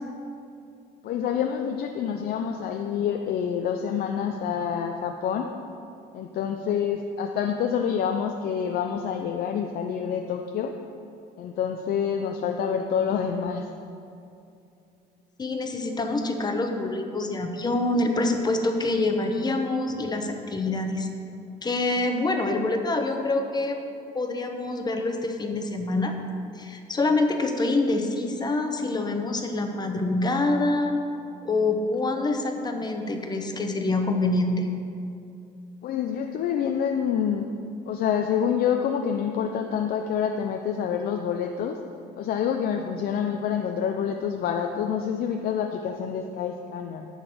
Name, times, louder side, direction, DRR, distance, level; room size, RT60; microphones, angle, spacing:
voice 1, 1.0-5.5 6.1-10.7 11.4-13.7 35.8-37.5 37.9-41.8 42.2-47.1, left 8 dB, 65° left, 4 dB, 0.6 m, -27 dB
voice 2, 15.4-21.1 21.6-23.8 24.1-26.2 26.6-31.0 31.4-34.7, left 2 dB, 25° left, 4 dB, 0.9 m, -26 dB
11.0 x 4.0 x 7.8 m, 2.6 s
cardioid pair, 110°, 17 cm